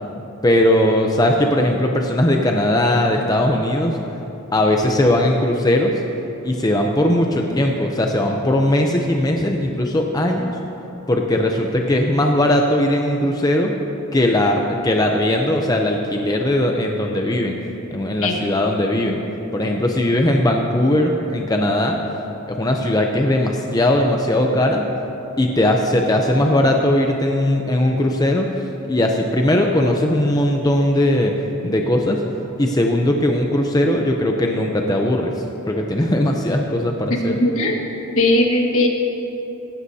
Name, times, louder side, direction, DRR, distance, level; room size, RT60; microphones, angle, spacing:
voice 1, 0.4-4.0 4.5-5.9 6.4-10.5 11.1-13.7 14.1-17.6 17.9-19.2 19.5-22.0 22.5-24.8 25.4-28.5 28.9-31.3 31.6-32.2 32.6-37.4, left 1 dB, 15° left, 2 dB, 0.6 m, -19 dB
voice 2, 37.1-37.8 38.2-38.9, left 1 dB, 70° left, 0 dB, 1.7 m, -18 dB
18.0 x 14.5 x 2.8 m, 3.0 s
head